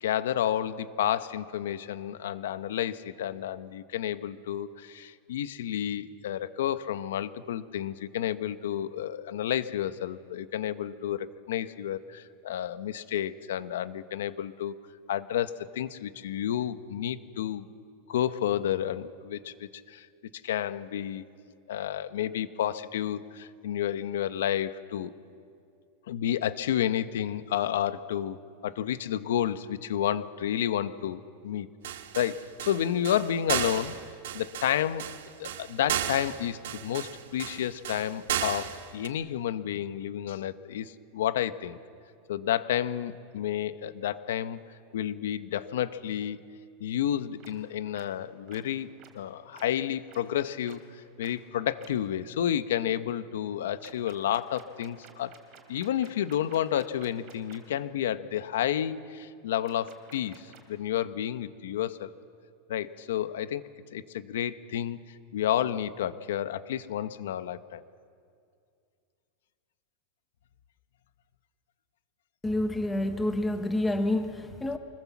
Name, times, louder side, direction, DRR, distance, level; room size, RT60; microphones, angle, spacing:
voice 1, 0.0-14.7 15.1-17.7 18.1-20.1 20.4-21.2 21.7-25.1 26.1-31.7 32.1-34.0 34.3-35.1 35.4-41.8 42.3-44.6 44.9-46.4 46.8-48.9 49.1-55.4 55.7-62.1 62.7-65.0 65.3-67.8, left 10 dB, 80° left, 13 dB, 0.9 m, -31 dB
sound 1, 31.8-39.1, right 11 dB, 85° right, 1.5 m, -34 dB
sound 2, 47.4-47.5 47.9-48.0 48.5-48.6 49.0-49.1 49.5-49.6 50.1-50.2 50.6-50.8 51.2-51.3 51.8-51.9 53.8-57.6 59.6-60.8, right 9 dB, 30° right, 2.8 m, -52 dB
voice 2, 72.4-74.8, left 1 dB, 5° left, 7 dB, 0.8 m, -28 dB
25.0 x 21.0 x 7.3 m, 2.3 s
supercardioid pair, 180°, 0 cm